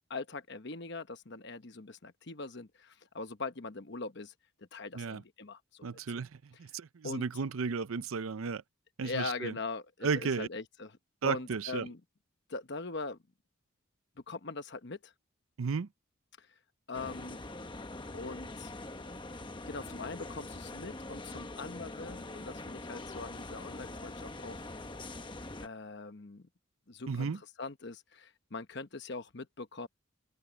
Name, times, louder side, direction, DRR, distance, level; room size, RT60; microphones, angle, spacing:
voice 1, 0.1-4.3 4.6-6.2 7.0-7.3 9.0-10.9 11.2-12.0 12.5-13.2 14.3-15.1 16.4-16.5 16.9-17.4 18.1-18.7 19.7-24.7 25.6-26.5 26.9-27.3 27.6-29.9, left 3 dB, 55° left, 1.1 m, -41 dB
voice 2, 5.8-8.6 9.0-9.5 10.0-10.5 11.2-11.9 15.6-15.9 27.1-27.4, right 5 dB, 80° right, 0.6 m, -34 dB
sound 1, 16.9-25.7, left 2 dB, 25° left, 1.0 m, -43 dB
open air
head